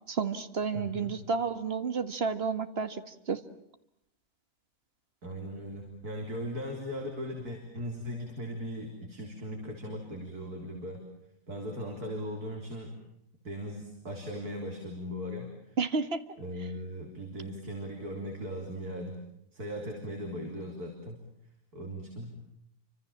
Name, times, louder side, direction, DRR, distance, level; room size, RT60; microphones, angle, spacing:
voice 1, 0.1-3.4 15.8-16.2, right 5 dB, 45° right, 10 dB, 1.9 m, -31 dB
voice 2, 0.7-1.1 5.2-11.0 11.5-12.9 13.4-15.8 16.4-19.2 19.5-21.2 21.7-22.4, equal, 90° right, 2 dB, 4.4 m, -38 dB
30.0 x 26.0 x 7.3 m, 0.77 s
omnidirectional pair, 1.6 m